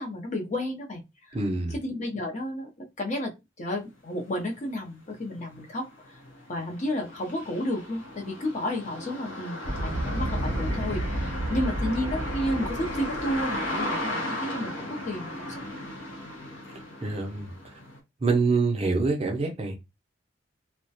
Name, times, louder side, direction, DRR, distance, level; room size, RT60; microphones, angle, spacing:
voice 1, 0.0-1.4 1.7-3.3 3.6-6.2 6.5-15.9, left 1 dB, 35° left, 0.5 m, -32 dB
voice 2, 1.3-1.8 17.0-17.5 18.2-19.8, right 3 dB, 30° right, 0.5 m, -25 dB
sound 1, 4.6-4.7 5.1-18.0, left 1 dB, 80° left, 0.7 m, -36 dB
sound 2, 9.6-13.6, right 1 dB, 65° right, 0.7 m, -31 dB
2.3 x 2.1 x 2.7 m
head